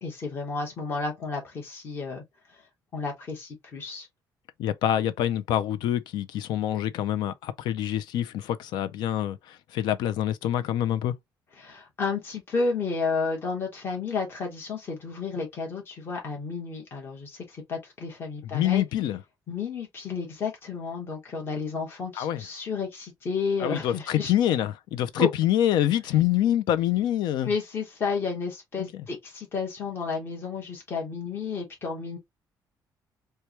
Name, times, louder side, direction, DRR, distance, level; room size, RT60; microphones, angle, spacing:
voice 1, 0.0-2.2 2.5-2.6 2.9-4.1 11.6-18.8 19.5-24.3 25.1-25.3 27.4-32.2, left 4 dB, 30° left, 1.2 m, -32 dB
voice 2, 4.6-11.2 18.4-19.2 22.2-22.5 23.6-27.5 28.8-29.0, left 11 dB, 85° left, 0.4 m, -26 dB
4.5 x 2.2 x 2.8 m
cardioid pair, 175°, 7 cm